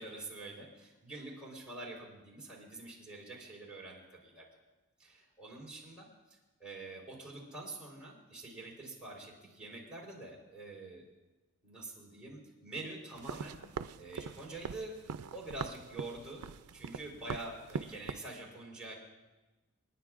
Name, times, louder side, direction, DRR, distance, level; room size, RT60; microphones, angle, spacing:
voice 1, 0.0-4.4 5.0-6.1 6.6-11.0 11.6-13.6 14.0-15.0 15.3-16.4 16.7-18.9, right 2 dB, 5° right, -5 dB, 4.0 m, -46 dB
sound 1, 13.2-18.2, right 6 dB, 85° right, 0.4 m, -42 dB
28.5 x 10.5 x 2.5 m, 1.1 s
head